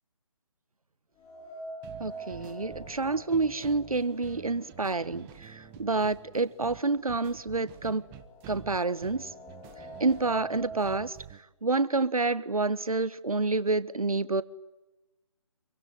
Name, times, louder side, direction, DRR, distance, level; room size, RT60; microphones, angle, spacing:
sound 1, 1.2-5.3 5.6-5.7 6.7-6.8 7.2-11.0, right 1 dB, 15° left, 2.2 m, -45 dB
sound 2, 1.8-11.4, right 12 dB, 10° right, 0.9 m, -49 dB
voice 1, 2.0-8.1 8.5-9.3 10.0-11.2 11.6-14.4, right 3 dB, 85° right, 1.5 m, -28 dB
26.5 x 24.0 x 9.5 m
figure-of-eight pair, 155°, 18 cm